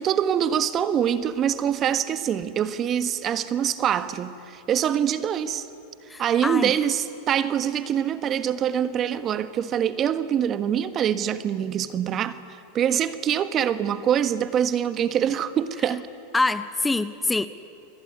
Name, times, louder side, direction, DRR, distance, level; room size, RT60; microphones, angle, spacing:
voice 1, 0.0-5.7 6.2-12.4 12.7-16.0, right 9 dB, 35° right, 12 dB, 1.4 m, -24 dB
voice 2, 6.1-6.7 16.3-17.5, left 3 dB, 10° left, 12 dB, 0.9 m, -25 dB
27.5 x 21.0 x 9.6 m, 2.6 s
hypercardioid pair, 105°, 0 cm